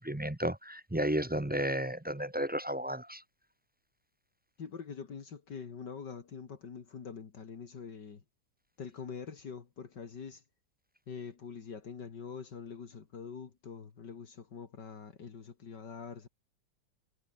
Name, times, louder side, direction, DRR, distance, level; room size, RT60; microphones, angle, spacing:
voice 1, 0.0-3.2, right 1 dB, 10° right, 0.6 m, -33 dB
voice 2, 4.6-8.2 8.8-10.4 11.1-16.3, left 6 dB, 70° left, 2.8 m, -44 dB
omnidirectional pair, 1.9 m